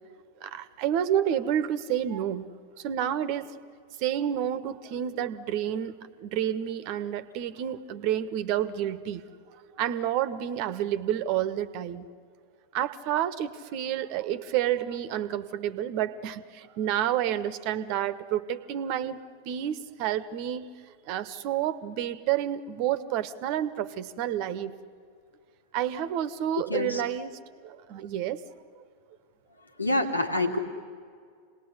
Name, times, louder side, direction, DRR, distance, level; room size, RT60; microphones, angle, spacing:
voice 1, 0.4-2.5 2.8-3.6 4.0-9.2 9.7-12.1 12.7-20.7 21.1-24.7 25.7-27.3 27.6-28.4, right 10 dB, 45° right, 14 dB, 1.3 m, -29 dB
voice 2, 26.7-27.0 29.8-30.6, left 2 dB, 85° left, 5 dB, 2.4 m, -26 dB
27.5 x 19.5 x 9.7 m, 2.1 s
figure-of-eight pair, 90°, 0 cm